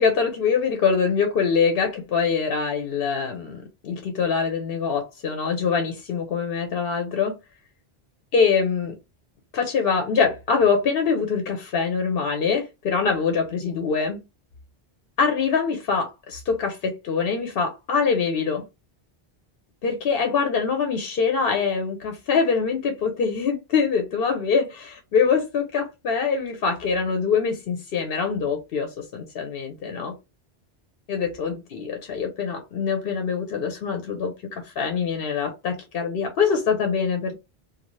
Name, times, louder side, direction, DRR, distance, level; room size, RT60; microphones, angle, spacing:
voice 1, 0.0-7.3 8.3-9.0 9.5-14.2 15.2-18.6 19.8-30.2 31.1-37.3, left 5 dB, 70° left, 0.8 m, -24 dB
2.6 x 2.4 x 3.0 m
omnidirectional pair, 1.1 m